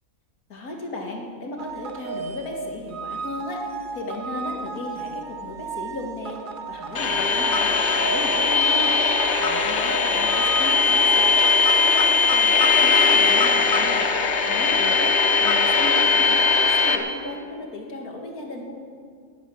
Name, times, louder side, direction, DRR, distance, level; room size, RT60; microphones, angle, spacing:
voice 1, 0.5-3.6 3.9-6.4 6.7-9.0 9.4-18.7, left 2 dB, 85° left, 1 dB, 2.4 m, -35 dB
sound 1, 1.6-11.5, right 5 dB, 45° right, 0.8 m, -35 dB
sound 2, 6.9-17.0, left 4 dB, 55° left, 1.3 m, -19 dB
19.5 x 9.4 x 6.3 m, 2.1 s
omnidirectional pair, 1.5 m